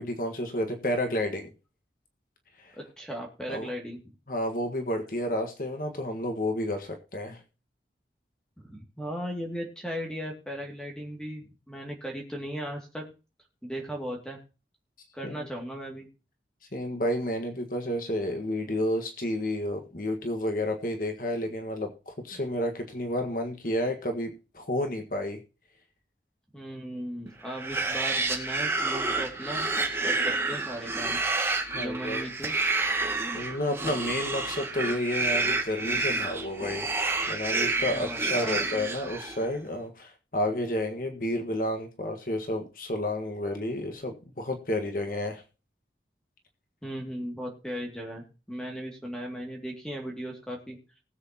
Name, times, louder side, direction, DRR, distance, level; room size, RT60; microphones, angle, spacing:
voice 1, 0.0-1.5 2.6-2.8 3.5-3.7 4.3-7.4 15.2-15.5 16.7-25.4 31.7-32.3 33.3-45.4, left 1 dB, 50° left, 5 dB, 1.6 m, -31 dB
voice 2, 3.0-4.0 8.6-13.0 13.6-14.4 15.1-16.1 22.3-22.4 26.5-29.7 30.0-31.2 31.8-32.5 37.9-38.6 46.8-50.8, equal, 5° left, 0 dB, 2.4 m, -37 dB
sound 1, 27.5-39.5, right 3 dB, 15° right, 2.1 m, -29 dB
20.0 x 8.0 x 2.9 m, 0.31 s
head